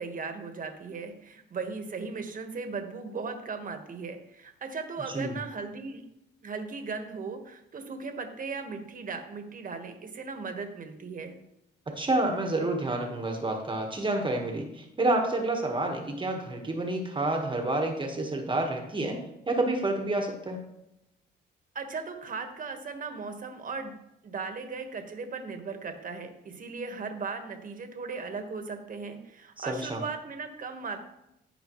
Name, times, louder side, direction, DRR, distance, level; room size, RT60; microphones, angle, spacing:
voice 1, 0.0-6.0 6.4-11.4 21.7-24.0 24.2-31.0, right 4 dB, 45° right, 6 dB, 1.4 m, -37 dB
voice 2, 11.9-20.6 29.6-30.0, right 2 dB, 25° right, 3 dB, 1.3 m, -29 dB
14.0 x 4.9 x 3.1 m, 0.85 s
cardioid pair, 90°, 20 cm